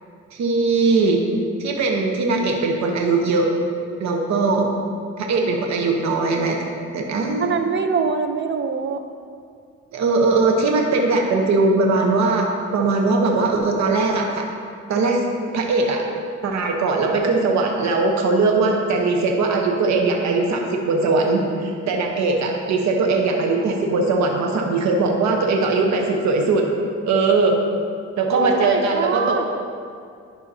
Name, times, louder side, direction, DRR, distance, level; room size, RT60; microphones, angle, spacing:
voice 1, 0.3-1.2 1.6-3.5 4.0-4.7 5.2-6.6 6.9-7.5 9.9-14.5 14.9-15.2 15.5-16.0 16.4-26.7 27.0-27.6 28.2-29.4, right 3 dB, 65° right, 1 dB, 1.0 m, -20 dB
voice 2, 7.4-9.0 28.3-29.4, right 5 dB, 40° right, 7 dB, 0.7 m, -23 dB
11.0 x 5.6 x 2.7 m, 2.2 s
cardioid pair, 90°, 30 cm